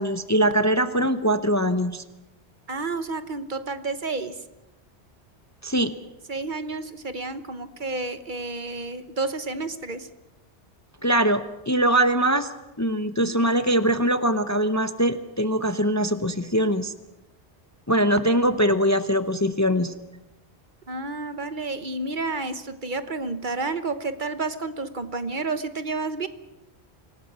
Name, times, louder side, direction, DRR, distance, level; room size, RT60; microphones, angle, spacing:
voice 1, 0.0-2.0 5.6-5.9 11.0-12.5 12.8-16.9 17.9-19.9, right 1 dB, 15° left, 10 dB, 0.7 m, -22 dB
voice 2, 2.7-4.4 6.3-10.1 20.9-26.3, right 3 dB, 45° right, 11 dB, 1.2 m, -30 dB
26.0 x 17.5 x 7.4 m, 1.0 s
omnidirectional pair, 1.1 m